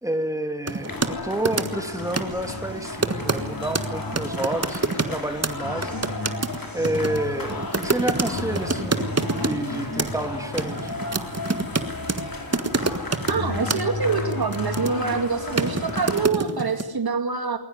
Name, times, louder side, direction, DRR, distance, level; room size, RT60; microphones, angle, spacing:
voice 1, 0.0-5.9 6.7-9.1 9.4-11.0, right 1 dB, 5° right, 5 dB, 2.8 m, -29 dB
sound 1, 0.7-1.1 1.4-1.9 2.2-2.4 3.0-3.4 3.7-3.9 4.1-5.2 5.4-5.5 5.8-9.6 10.0-10.3 10.6-12.2 12.5-13.4 13.7-13.8 14.3-15.2 15.6-16.8, right 4 dB, 30° right, 1.6 m, -26 dB
sound 2, 0.8-16.3, left 2 dB, 45° left, 4.7 m, -32 dB
voice 2, 13.3-17.6, right 4 dB, 50° right, 7 dB, 2.2 m, -25 dB
21.5 x 19.5 x 9.5 m, 0.99 s
wide cardioid pair, 70°, 46 cm